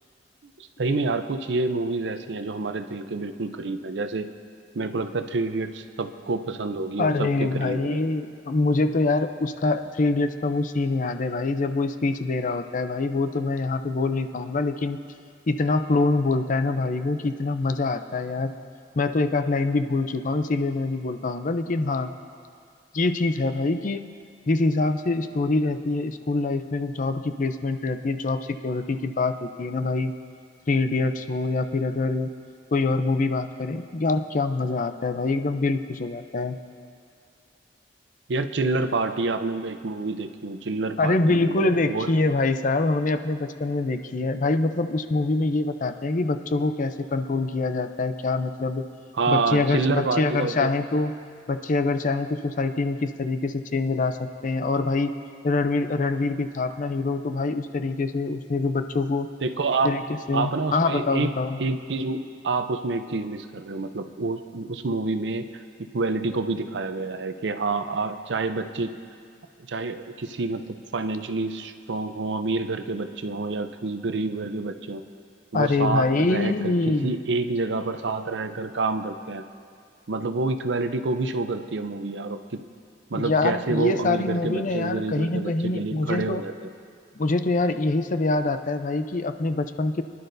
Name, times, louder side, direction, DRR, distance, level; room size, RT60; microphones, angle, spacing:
voice 1, 0.6-4.3 4.7-8.0 38.3-42.1 44.2-44.3 49.1-50.7 59.4-60.0 60.3-61.3 61.6-65.6 65.9-68.9 69.7-75.0 75.5-76.7 77.0-79.4 80.1-82.6 83.1-86.7, right 3 dB, 75° right, 9 dB, 0.6 m, -28 dB
voice 2, 7.0-15.0 15.5-18.6 18.9-22.1 22.9-24.0 24.5-30.1 30.7-32.3 32.7-36.6 41.0-48.9 49.3-51.1 51.5-55.1 55.4-59.3 59.8-60.0 60.3-61.6 75.5-77.2 83.1-86.4 87.2-90.0, left 3 dB, 45° left, 9 dB, 0.5 m, -25 dB
24.0 x 11.0 x 2.6 m, 2.3 s
head